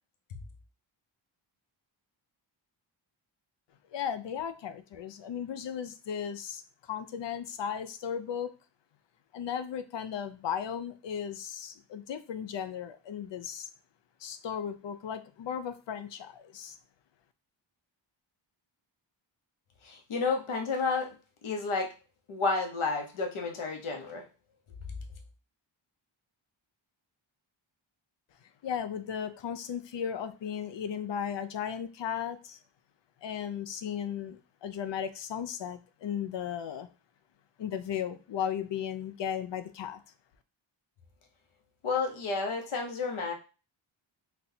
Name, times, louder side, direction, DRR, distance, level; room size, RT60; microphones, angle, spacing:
voice 1, 3.9-8.5 9.3-13.7 14.2-16.8 28.6-32.6 33.2-36.9 37.6-40.0, left 8 dB, 65° left, 11 dB, 0.5 m, -36 dB
voice 2, 19.8-21.1 21.4-21.9 22.3-24.2 41.8-43.3, left 4 dB, 80° left, 3 dB, 0.9 m, -31 dB
4.2 x 2.2 x 2.7 m, 0.33 s
wide cardioid pair, 100°, 48 cm